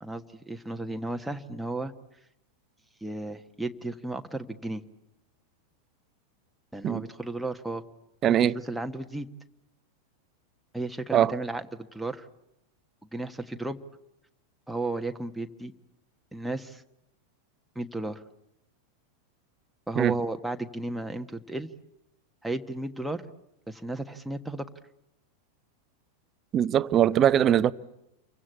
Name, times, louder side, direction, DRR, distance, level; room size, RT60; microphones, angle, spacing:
voice 1, 0.0-1.9 3.0-4.8 6.7-7.8 8.3-8.4 8.6-9.3 10.7-12.3 13.1-13.8 14.7-15.7 16.3-16.8 17.7-18.2 19.9-21.7 22.4-23.2 23.7-24.7, right 2 dB, 5° right, 1.5 m, -34 dB
voice 2, 8.2-8.6 11.1-11.3 20.0-20.1 26.5-27.7, right 10 dB, 30° right, 0.9 m, -21 dB
28.5 x 24.0 x 8.3 m
figure-of-eight pair, 90°, 0 cm